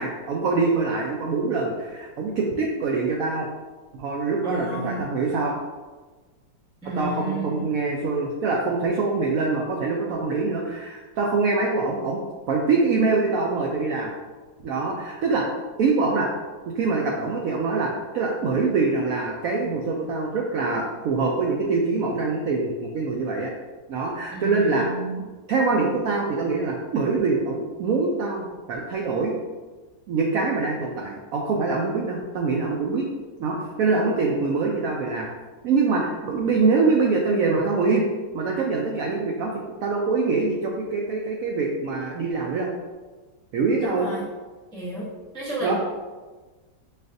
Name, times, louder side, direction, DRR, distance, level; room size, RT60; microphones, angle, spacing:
voice 1, 0.0-3.5 3.9-5.5 7.0-14.1 14.6-15.5 15.8-16.3 16.7-23.5 23.9-24.9 25.5-29.4 30.1-33.1 33.4-35.3 35.6-38.0 38.3-39.5 39.8-42.7 43.5-44.1 45.6-45.7, right 4 dB, 80° right, -1 dB, 0.7 m, -24 dB
voice 2, 4.4-5.0 6.8-7.6 24.3-25.2 43.8-44.2 44.7-45.1 45.3-45.7, right 1 dB, 5° left, -7 dB, 0.3 m, -31 dB
6.3 x 2.4 x 2.5 m, 1.3 s
omnidirectional pair, 2.0 m